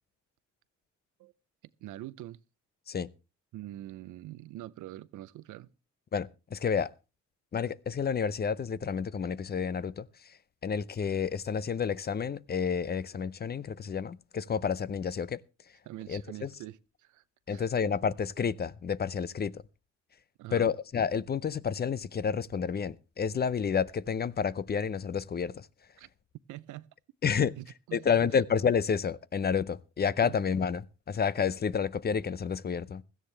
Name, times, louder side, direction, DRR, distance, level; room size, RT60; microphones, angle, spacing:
voice 1, 1.8-2.4 3.5-5.7 15.8-17.7 20.4-20.7 26.0-26.1 26.5-26.9 27.4-28.2 30.2-30.3, right 15 dB, 80° right, 0.7 m, -44 dB
voice 2, 6.1-6.9 7.5-10.1 10.6-15.4 16.1-16.5 17.5-19.6 20.5-25.7 27.2-27.5 27.9-33.0, left 6 dB, 30° left, 0.6 m, -30 dB
16.5 x 13.5 x 3.3 m
cardioid pair, 90°, 30 cm